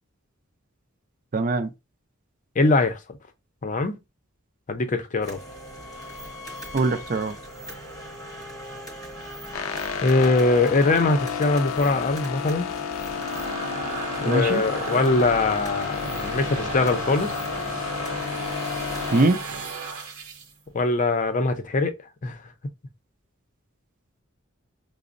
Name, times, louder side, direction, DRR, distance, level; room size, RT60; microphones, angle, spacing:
voice 1, 1.3-1.7 6.7-7.3 14.3-14.6 19.1-19.4, right 3 dB, 40° right, 0.5 m, -22 dB
voice 2, 2.6-3.2 3.6-4.0 4.7-5.4 10.0-12.8 14.2-17.3 20.7-22.0 22.2-22.4, left 3 dB, 40° left, 0.6 m, -22 dB
sound 1, 5.2-19.2, equal, 20° left, 0.9 m, -40 dB
sound 2, 9.5-19.3, left 7 dB, 85° left, 0.4 m, -32 dB
sound 3, 12.8-20.5, right 3 dB, 90° right, 0.7 m, -34 dB
5.9 x 2.0 x 2.5 m
head